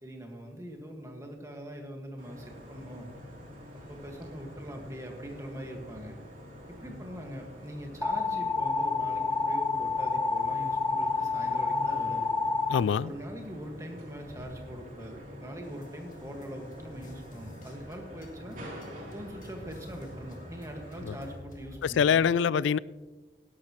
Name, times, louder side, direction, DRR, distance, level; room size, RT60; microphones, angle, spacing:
voice 1, 0.0-3.1 3.7-6.2 6.7-12.3 13.0-18.6 19.1-22.3, equal, 15° right, 2 dB, 1.7 m, -42 dB
sound 1, 2.2-21.3, equal, 45° right, 3.2 m, -46 dB
sound 2, 8.0-12.8, left 4 dB, 5° left, 0.4 m, -28 dB
voice 2, 12.7-13.1 21.1-21.2 21.8-22.8, left 7 dB, 80° left, 20 dB, 0.3 m, -24 dB
sound 3, 15.6-22.2, left 1 dB, 45° left, 2.0 m, -50 dB
17.0 x 11.5 x 3.1 m, 1.2 s
head